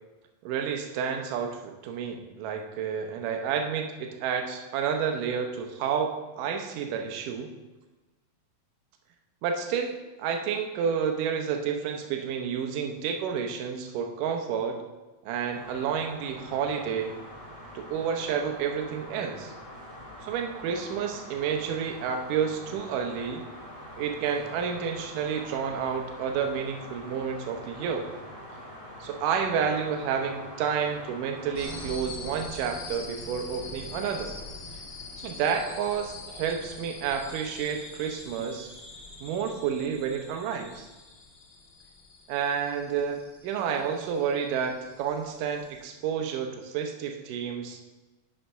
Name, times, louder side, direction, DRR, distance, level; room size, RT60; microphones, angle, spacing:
voice 1, 0.4-7.5 9.4-14.8 15.3-17.1 17.7-19.5 20.2-23.4 24.0-28.1 29.0-34.4 35.2-38.7 39.2-40.9 42.3-47.8, right 7 dB, 75° right, 4 dB, 2.3 m, -30 dB
sound 1, 15.5-31.9, equal, 20° left, 0.9 m, -44 dB
sound 2, 31.6-45.8, left 3 dB, 45° left, 1.9 m, -44 dB
6.3 x 5.7 x 5.5 m, 1.2 s
omnidirectional pair, 4.1 m